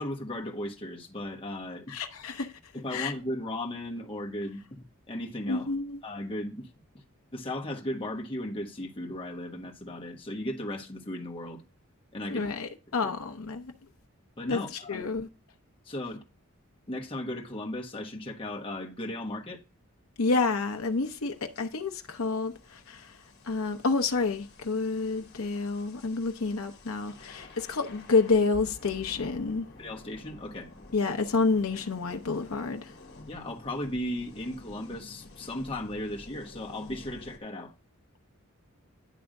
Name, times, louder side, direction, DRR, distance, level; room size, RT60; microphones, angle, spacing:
voice 1, 0.0-2.0 2.7-5.7 6.0-6.7 7.3-11.6 12.1-12.4 13.0-13.1 14.4-15.1 15.8-16.2 16.9-19.6 29.8-30.7 33.3-37.7, left 1 dB, 25° left, 1.3 m, -36 dB
voice 2, 1.9-2.5 2.9-3.1 5.5-6.0 12.3-13.7 14.5-14.6 14.9-15.3 20.2-23.2 23.4-29.6 30.9-32.9, left 4 dB, 75° left, 0.8 m, -29 dB
sound 1, 20.3-37.4, left 2 dB, 50° left, 1.5 m, -51 dB
10.0 x 3.4 x 6.4 m
head